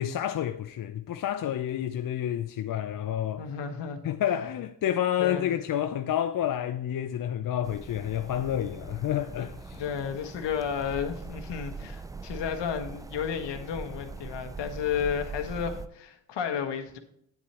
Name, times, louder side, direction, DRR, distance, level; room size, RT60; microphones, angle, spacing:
voice 1, 0.0-3.4 4.0-9.8, left 10 dB, 45° left, 0.6 m, -29 dB
voice 2, 3.4-4.0 5.2-5.5 9.7-17.0, left 7 dB, 60° left, 1.4 m, -32 dB
sound 1, 7.6-15.9, right 4 dB, 10° right, 0.3 m, -41 dB
9.0 x 8.4 x 2.9 m
hypercardioid pair, 55°, 47 cm